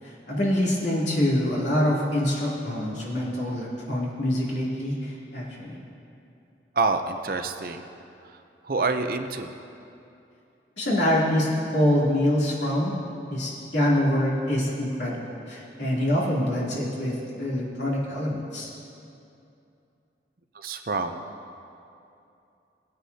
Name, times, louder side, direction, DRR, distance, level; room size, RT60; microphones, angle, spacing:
voice 1, 0.0-5.8 10.8-12.9 13.3-18.7, left 1 dB, 85° left, -6 dB, 3.0 m, -25 dB
voice 2, 6.7-7.9 8.2-9.5 20.5-21.2, right 3 dB, 55° right, 7 dB, 0.6 m, -27 dB
19.0 x 9.5 x 2.8 m, 2.7 s
head